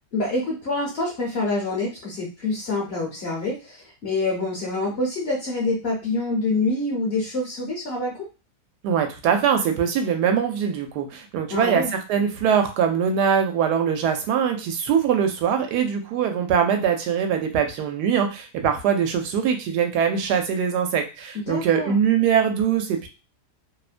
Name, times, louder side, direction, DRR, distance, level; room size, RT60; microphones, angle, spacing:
voice 1, 0.1-8.3 11.5-11.9 21.3-22.0, left 2 dB, 50° left, -2 dB, 0.8 m, -26 dB
voice 2, 8.8-23.1, right 7 dB, 90° right, 5 dB, 1.2 m, -22 dB
2.8 x 2.1 x 2.4 m, 0.31 s
omnidirectional pair, 1.7 m